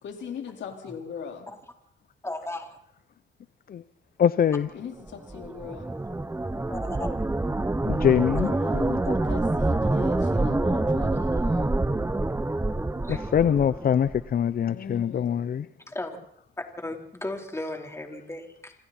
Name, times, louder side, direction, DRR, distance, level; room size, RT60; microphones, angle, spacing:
voice 1, 0.0-1.5 4.7-5.9 8.4-11.8 14.7-15.7, left 7 dB, 65° left, 4.6 m, -39 dB
voice 2, 2.2-2.7 6.7-7.1 11.0-11.2 13.1-13.3 15.9-16.1 16.8-18.7, left 2 dB, 15° left, 4.2 m, -35 dB
voice 3, 4.2-4.7 7.8-8.5 13.1-15.7, left 8 dB, 50° left, 0.8 m, -23 dB
sound 1, 5.1-14.3, right 2 dB, 10° right, 1.2 m, -26 dB
27.5 x 26.0 x 4.4 m
cardioid pair, 90°, 20 cm